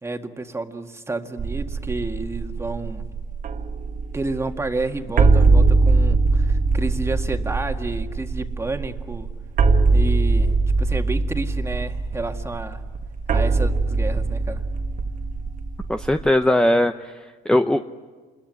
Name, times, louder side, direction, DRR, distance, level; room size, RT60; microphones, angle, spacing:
voice 1, 0.0-3.1 4.1-9.3 9.9-12.8 13.3-14.6, right 2 dB, 15° right, 5 dB, 2.0 m, -30 dB
sound 1, 1.4-16.3, right 3 dB, 50° right, 1.7 m, -21 dB
voice 2, 15.9-17.8, left 1 dB, 5° left, 8 dB, 0.8 m, -20 dB
28.0 x 21.5 x 9.7 m, 1.5 s
cardioid pair, 110°, 17 cm